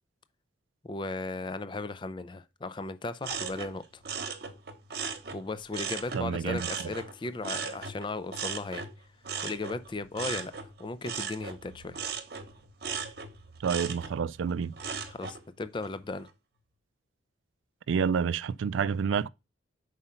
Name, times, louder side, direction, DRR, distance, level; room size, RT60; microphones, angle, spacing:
voice 1, 0.8-3.8 5.3-8.9 9.4-10.5 10.8-12.0 15.1-16.3, left 3 dB, 25° left, 0.4 m, -36 dB
sound 1, 3.2-6.2 6.6-15.4 15.8-16.3, right 6 dB, 55° right, 1.0 m, -38 dB
voice 2, 6.1-6.7 13.6-14.7 17.9-19.3, right 6 dB, 85° right, 0.4 m, -28 dB
5.6 x 4.9 x 5.6 m
head